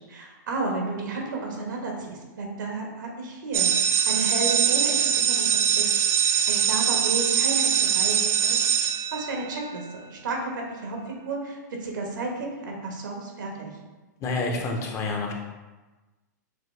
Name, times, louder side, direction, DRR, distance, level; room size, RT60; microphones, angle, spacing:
voice 1, 0.1-5.8 6.2-8.7 9.1-13.7, right 3 dB, 85° right, 0 dB, 1.3 m, -32 dB
sound 1, 3.5-9.7, right 8 dB, 25° right, 0.3 m, -23 dB
voice 2, 14.2-15.3, left 3 dB, 30° left, 2 dB, 0.6 m, -28 dB
6.0 x 2.3 x 3.3 m, 1.2 s
hypercardioid pair, 130°, 10 cm